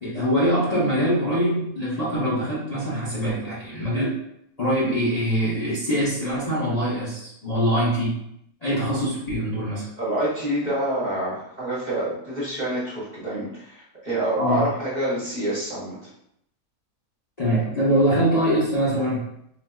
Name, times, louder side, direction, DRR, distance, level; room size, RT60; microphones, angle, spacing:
voice 1, 0.0-4.1 4.6-8.2 8.6-9.9 14.4-14.7 17.4-19.3, equal, 35° left, -9 dB, 0.7 m, -23 dB
voice 2, 10.0-15.9, right 1 dB, 35° right, -9 dB, 1.0 m, -27 dB
3.9 x 2.5 x 2.3 m, 0.76 s
omnidirectional pair, 1.5 m